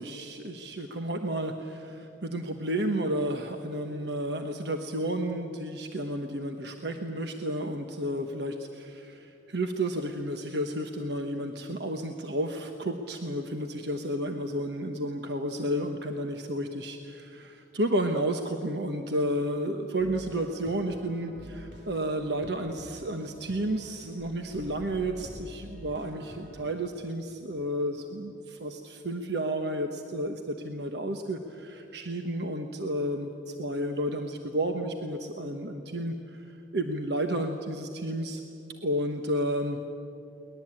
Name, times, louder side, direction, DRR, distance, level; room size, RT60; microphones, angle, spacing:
voice 1, 0.0-36.4 36.7-38.4 38.8-39.8, right 1 dB, 60° right, 5 dB, 1.2 m, -32 dB
sound 1, 20.0-26.7, equal, 80° right, 3.3 m, -47 dB
23.0 x 20.0 x 8.9 m, 2.6 s
head